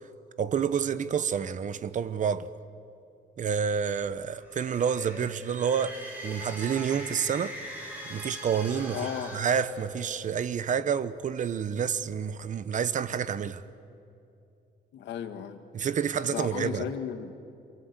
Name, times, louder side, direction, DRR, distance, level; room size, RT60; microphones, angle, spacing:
voice 1, 0.4-2.5 3.4-7.6 8.0-13.6 15.7-16.8, right 7 dB, 45° right, 0.9 m, -29 dB
sound 1, 4.3-10.4, equal, 10° right, 7.9 m, -41 dB
voice 2, 8.9-9.3 14.9-15.6 16.2-17.3, left 8 dB, 90° left, 1.6 m, -35 dB
27.5 x 23.0 x 8.2 m
cardioid pair, 145°, 18 cm